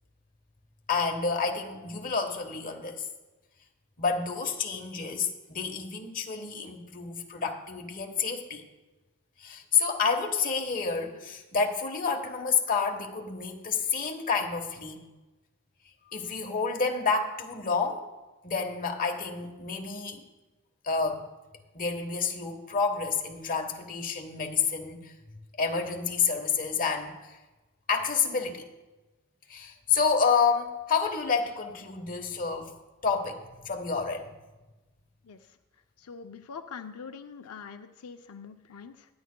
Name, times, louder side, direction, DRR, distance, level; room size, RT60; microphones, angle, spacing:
voice 1, 0.9-3.0 4.0-8.6 9.4-15.0 16.1-18.1 18.4-20.2 20.8-21.3 21.7-25.1 25.6-27.3 27.9-28.6 29.5-32.7 33.0-34.3, left 5 dB, 40° left, 3 dB, 1.1 m, -29 dB
voice 2, 36.0-39.1, left 6 dB, 85° left, 6 dB, 0.5 m, -43 dB
21.0 x 9.5 x 2.2 m, 1.1 s
head